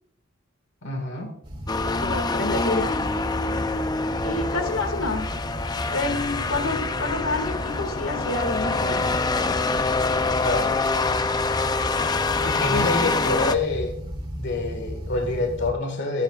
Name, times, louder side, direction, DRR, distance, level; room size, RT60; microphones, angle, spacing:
voice 1, 0.8-1.3 10.4-10.7 12.4-13.9 14.4-16.2, left 2 dB, 60° left, 4 dB, 1.8 m, -26 dB
sound 1, 1.4-15.7, equal, 25° right, 2.7 m, -34 dB
sound 2, 1.7-13.5, left 3 dB, 20° left, 0.5 m, -25 dB
voice 2, 2.0-3.0 4.2-5.3 5.9-9.1 12.4-12.9, left 2 dB, 80° left, 6 dB, 2.2 m, -28 dB
25.0 x 10.0 x 2.4 m, 0.64 s
head